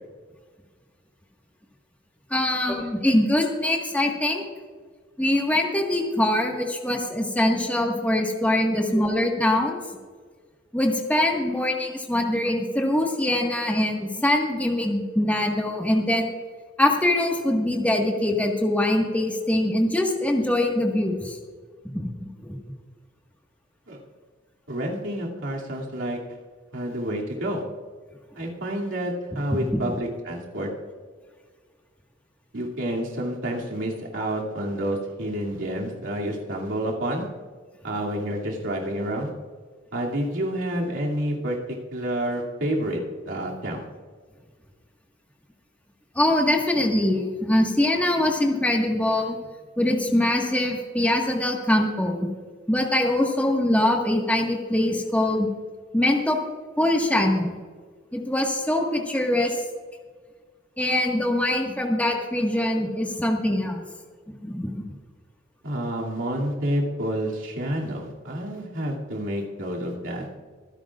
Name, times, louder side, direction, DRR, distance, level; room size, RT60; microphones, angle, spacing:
voice 1, 2.3-4.4 5.2-9.8 10.7-16.3 16.8-21.4 21.9-22.6 46.1-49.4 49.8-52.2 52.7-55.5 55.9-56.4 56.8-57.5 58.1-59.5 60.8-63.8 64.3-64.8, left 1 dB, 10° left, 0 dB, 1.6 m, -23 dB
voice 2, 24.7-26.2 26.7-27.6 28.3-30.7 32.5-37.3 37.8-39.3 39.9-43.0 43.2-43.8 65.6-70.3, right 1 dB, 75° right, -3 dB, 2.6 m, -29 dB
25.0 x 10.5 x 2.5 m, 1.5 s
head